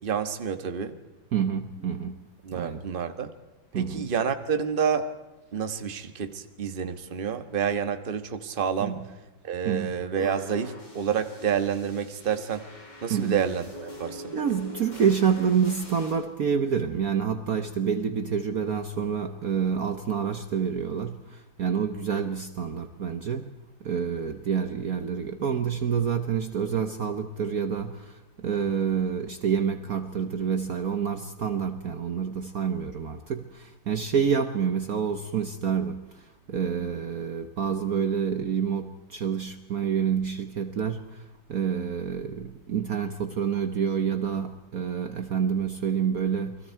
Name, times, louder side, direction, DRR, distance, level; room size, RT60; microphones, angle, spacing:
voice 1, 0.0-1.0 2.4-3.3 3.7-5.1 5.5-8.9 9.4-12.6 13.0-14.3, right 7 dB, 30° right, 1.3 m, -29 dB
voice 2, 1.3-2.8 3.7-4.1 8.8-9.1 9.6-9.9 13.1-13.4 14.3-23.5 23.8-46.6, right 7 dB, 55° right, 1.4 m, -28 dB
sound 1, 10.1-16.1, equal, 60° left, 6.0 m, -44 dB
29.5 x 22.0 x 4.6 m
omnidirectional pair, 2.1 m